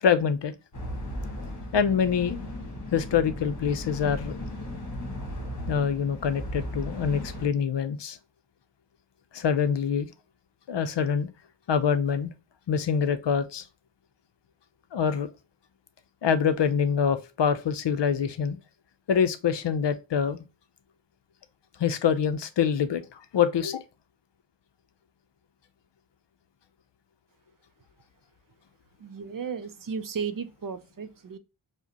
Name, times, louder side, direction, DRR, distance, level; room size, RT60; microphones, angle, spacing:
voice 1, 0.0-0.5 1.7-2.4 2.9-4.4 5.7-8.2 9.3-10.1 10.7-11.3 11.7-12.3 12.7-13.6 14.9-15.3 16.2-18.6 19.1-20.4 21.8-23.8, left 7 dB, 60° left, 0.6 m, -25 dB
sound 1, 0.7-7.5, left 1 dB, 40° left, 1.5 m, -36 dB
voice 2, 29.0-31.4, right 6 dB, 45° right, 0.5 m, -34 dB
4.8 x 2.1 x 2.7 m
wide cardioid pair, 65°, 47 cm